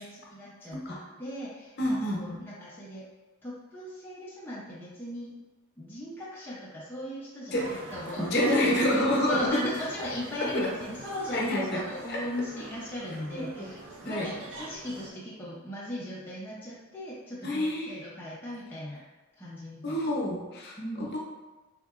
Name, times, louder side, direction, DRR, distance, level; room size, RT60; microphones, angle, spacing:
voice 1, 0.0-3.1 3.4-5.3 5.8-19.0 19.4-20.3 20.8-21.1, left 1 dB, 10° left, -8 dB, 0.4 m, -38 dB
voice 2, 1.8-2.4 7.5-7.7 8.2-9.6 10.5-10.6 11.3-11.8 12.1-12.2 13.3-13.7 14.0-14.3 17.4-18.0 19.8-20.8 21.1-21.2, left 1 dB, 50° left, -3 dB, 0.7 m, -27 dB
sound 1, 7.5-15.1, right 2 dB, 60° right, 0.5 m, -44 dB
3.6 x 2.8 x 2.3 m, 1.2 s
head